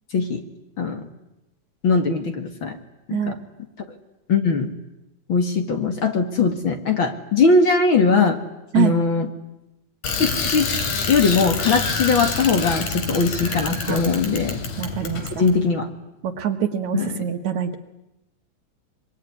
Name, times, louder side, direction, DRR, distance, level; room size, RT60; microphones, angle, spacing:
voice 1, 0.8-1.1 1.8-2.8 3.1-3.3 4.3-4.7 5.3-8.4 8.7-9.3 10.2-10.7 11.1-14.6 15.4-15.9 16.9-17.1, left 4 dB, 45° left, 5 dB, 2.4 m, -20 dB
Bicycle, 10.0-15.5, left 4 dB, 85° left, 4.5 m, -27 dB
voice 2, 14.8-15.3 16.2-17.8, right 9 dB, 70° right, 7 dB, 2.9 m, -24 dB
24.5 x 24.5 x 9.6 m, 0.92 s
omnidirectional pair, 3.5 m